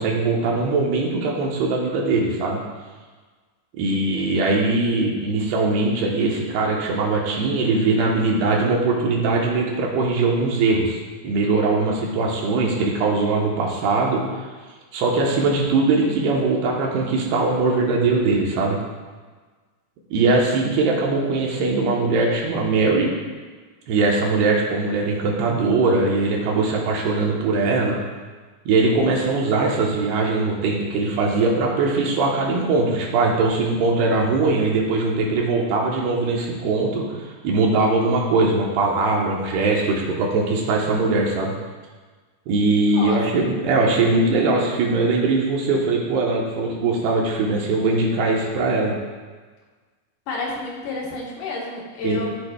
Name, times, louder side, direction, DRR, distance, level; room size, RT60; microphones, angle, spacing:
voice 1, 0.0-2.6 3.8-11.0 11.2-14.5 14.9-18.8 20.1-23.1 23.9-28.0 28.7-41.5 42.5-48.9 52.0-52.3, right 3 dB, 75° right, -2 dB, 2.9 m, -21 dB
voice 2, 42.9-43.2 50.3-52.3, left 3 dB, 70° left, -3 dB, 3.5 m, -30 dB
13.0 x 8.2 x 2.3 m, 1.4 s
omnidirectional pair, 5.0 m